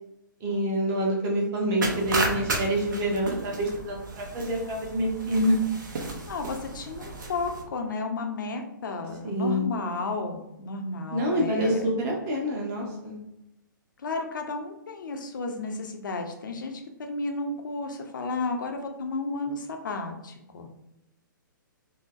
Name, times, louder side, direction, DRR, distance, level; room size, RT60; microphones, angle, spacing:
voice 1, 0.4-5.6 9.2-9.7 11.1-13.2, equal, 30° right, -1 dB, 0.9 m, -27 dB
sound 1, 1.8-7.6, right 2 dB, 65° right, 0.7 m, -33 dB
voice 2, 6.3-11.9 14.0-20.7, left 3 dB, 70° left, 4 dB, 0.6 m, -33 dB
4.0 x 2.1 x 2.4 m, 0.87 s
figure-of-eight pair, 120°, 11 cm